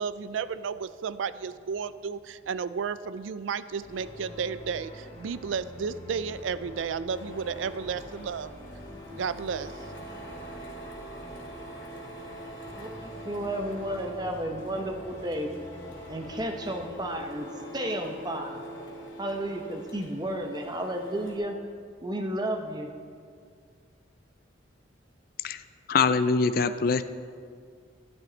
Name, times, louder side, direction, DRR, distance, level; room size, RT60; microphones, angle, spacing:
voice 1, 0.0-8.5 9.1-9.7, right 6 dB, 85° right, 15 dB, 0.4 m, -33 dB
sound 1, 3.8-16.9, left 1 dB, 35° left, 2.5 m, -45 dB
Printer, 7.1-21.4, equal, 80° left, 2.6 m, -44 dB
voice 2, 12.8-15.5 16.1-17.5 17.7-18.6 19.2-21.6 22.0-22.9, right 1 dB, 20° right, 4 dB, 0.9 m, -32 dB
voice 3, 25.9-27.0, left 4 dB, 50° left, 12 dB, 0.4 m, -23 dB
13.0 x 11.5 x 4.0 m, 2.2 s
head